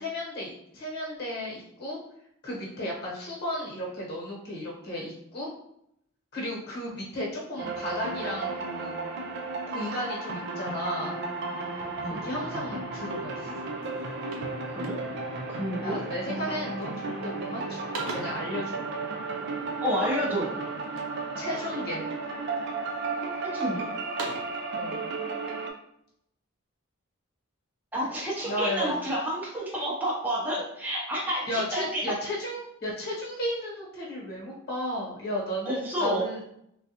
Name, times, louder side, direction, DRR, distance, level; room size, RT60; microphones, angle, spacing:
voice 1, 0.0-2.0 2.4-5.5 6.3-8.9 9.7-11.2 12.0-13.5 15.8-18.8 21.4-22.1 24.8-25.0 28.4-29.0 31.5-36.4, left 1 dB, 45° left, -4 dB, 1.1 m, -34 dB
sound 1, 7.6-25.7, right 3 dB, 50° right, 0.4 m, -34 dB
sound 2, 13.4-13.5 13.8-15.4 16.0-16.3 16.7-17.2 17.5-18.5 20.0-21.2 21.7-22.4 22.9-23.6 23.9-24.6, right 2 dB, 85° right, 0.7 m, -42 dB
voice 2, 15.5-16.0 19.8-20.5 23.4-23.9 27.9-32.1 35.6-36.3, equal, 10° right, -5 dB, 0.6 m, -30 dB
3.5 x 2.2 x 2.8 m, 0.75 s
head